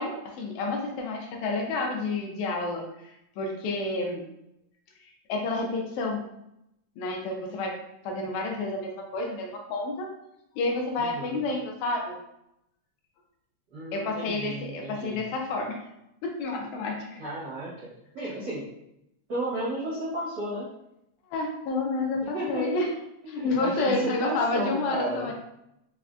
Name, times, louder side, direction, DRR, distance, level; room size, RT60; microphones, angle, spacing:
voice 1, 0.0-4.2 5.0-6.2 7.0-7.8 8.0-10.1 10.6-12.2 13.9-15.8 16.2-17.2 21.3-22.9 23.3-25.3, left 2 dB, 80° left, 1 dB, 1.8 m, -30 dB
voice 2, 11.0-11.4 13.7-15.2 17.2-18.7 19.3-20.7 22.2-22.7 23.3-25.3, right 1 dB, 80° right, -10 dB, 0.9 m, -33 dB
5.0 x 2.2 x 2.4 m, 0.83 s
omnidirectional pair, 3.4 m